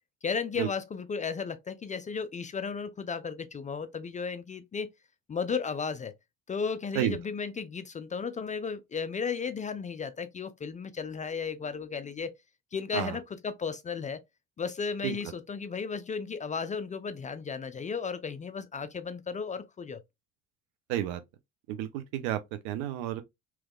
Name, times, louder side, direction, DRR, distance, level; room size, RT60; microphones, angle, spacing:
voice 1, 0.2-4.9 5.3-6.1 6.5-12.3 12.7-14.2 14.6-20.0, left 5 dB, 20° left, 0.4 m, -34 dB
voice 2, 20.9-21.2 21.7-22.4 22.6-23.2, right 12 dB, 70° right, 0.7 m, -31 dB
3.3 x 3.1 x 2.3 m
hypercardioid pair, 65°, 35 cm